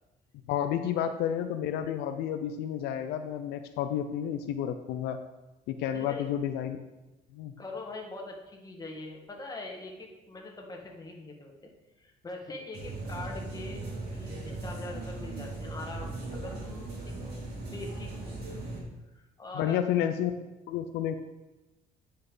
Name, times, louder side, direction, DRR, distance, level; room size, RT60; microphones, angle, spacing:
voice 1, 0.5-5.2 5.7-6.8 7.3-7.5 19.5-20.3 20.7-21.2, left 10 dB, 85° left, 8 dB, 0.5 m, -30 dB
voice 2, 5.9-6.2 7.6-11.5 12.0-13.8 14.1-16.9 17.6-18.3 19.1-19.8, left 2 dB, 20° left, 0 dB, 1.7 m, -42 dB
sound 1, 12.7-18.8, right 2 dB, 70° right, 3.0 m, -38 dB
9.8 x 5.6 x 3.9 m, 1.0 s
cardioid pair, 110°, 17 cm